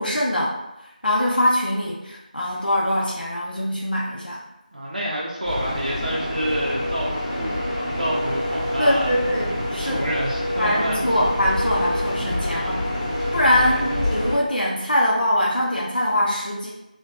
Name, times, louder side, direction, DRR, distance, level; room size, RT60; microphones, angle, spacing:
voice 1, 0.0-4.4 8.8-10.2 10.6-16.7, left 1 dB, 90° left, -4 dB, 0.6 m, -23 dB
voice 2, 4.7-9.2 9.8-11.2 13.6-14.0, right 1 dB, 60° right, -6 dB, 0.5 m, -29 dB
sound 1, 5.4-14.4, left 1 dB, 30° left, 0.8 m, -26 dB
2.8 x 2.2 x 2.3 m, 0.90 s
figure-of-eight pair, 170°, 5 cm